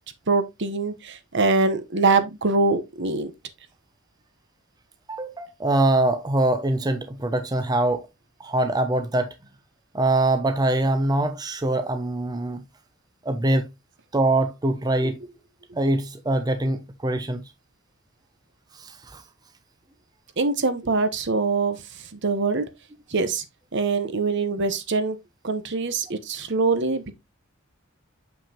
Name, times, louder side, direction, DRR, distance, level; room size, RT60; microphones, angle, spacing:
voice 1, 0.3-3.3 20.4-21.8 22.1-22.7 23.1-23.4 23.7-25.2 25.4-27.1, right 3 dB, 60° right, 1.0 m, -23 dB
voice 2, 5.1-8.1 8.4-9.3 9.9-12.6 13.2-13.7 14.1-15.2 15.8-17.4 18.7-19.2, right 2 dB, 20° right, 0.6 m, -23 dB
7.1 x 5.8 x 2.9 m
head